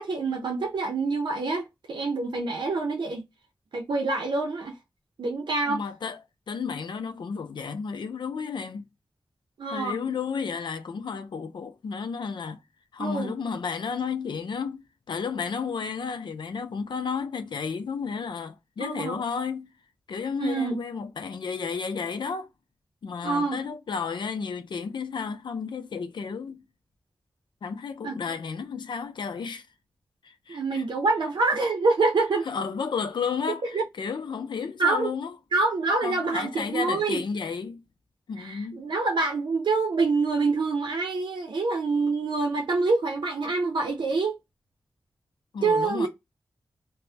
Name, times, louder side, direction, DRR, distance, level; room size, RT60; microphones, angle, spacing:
voice 1, 0.0-3.3 3.7-4.8 5.2-5.8 9.6-10.0 13.0-13.3 18.8-19.2 20.4-20.8 23.2-23.6 28.0-28.1 30.5-32.5 33.7-33.8 34.8-35.1 35.5-37.2 38.4-44.4 45.6-46.1, right 3 dB, 80° right, 0.6 m, -26 dB
voice 2, 5.6-6.2 6.5-8.8 9.7-12.6 12.9-19.7 20.1-22.5 23.0-26.6 27.6-29.6 30.2-30.8 32.5-35.3 36.0-37.8 38.3-38.8 45.5-46.1, left 5 dB, 80° left, 0.4 m, -32 dB
2.5 x 2.1 x 3.2 m
cardioid pair, 55°, 8 cm